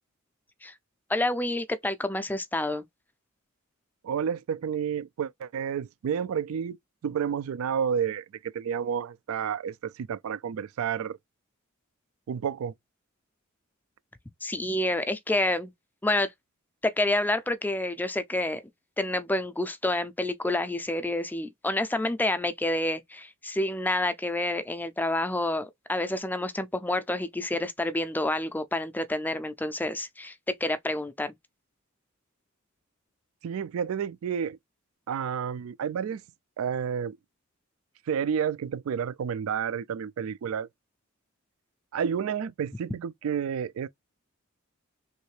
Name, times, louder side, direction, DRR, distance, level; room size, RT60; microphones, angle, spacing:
voice 1, 1.1-2.8 14.4-15.7 16.0-16.3 16.8-18.6 19.0-31.3, left 1 dB, 10° left, 0.4 m, -28 dB
voice 2, 4.0-6.8 7.0-8.2 8.5-11.2 12.3-12.7 33.4-34.6 35.1-36.2 36.6-37.2 38.1-40.7 41.9-43.9, right 7 dB, 75° right, 0.3 m, -30 dB
3.2 x 2.5 x 3.2 m
head